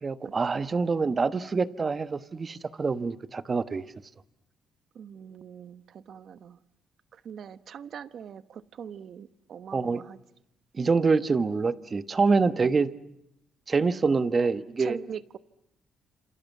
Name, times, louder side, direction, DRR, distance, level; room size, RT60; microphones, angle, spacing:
voice 1, 0.0-3.8 9.7-10.0 10.7-12.9 13.7-15.0, right 4 dB, 35° right, 1.2 m, -25 dB
voice 2, 4.9-6.6 7.1-10.2 14.8-15.4, right 8 dB, 60° right, 1.0 m, -42 dB
27.5 x 27.5 x 7.3 m
cardioid pair, 90°, 0 cm